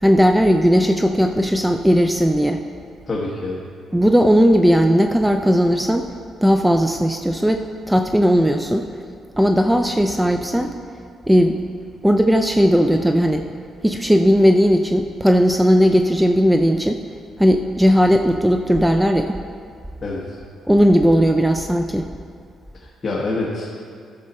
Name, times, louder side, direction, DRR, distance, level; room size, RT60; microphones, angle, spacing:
voice 1, 0.0-2.6 3.9-6.1 6.4-8.9 9.4-10.7 11.3-11.6 12.0-13.4 13.8-17.0 17.4-19.4 20.7-22.1, equal, 5° right, 5 dB, 0.4 m, -16 dB
voice 2, 3.1-3.6 20.0-20.4 22.8-23.7, left 2 dB, 35° left, -4 dB, 1.4 m, -26 dB
12.0 x 6.5 x 4.2 m, 2.3 s
cardioid pair, 90°, 0 cm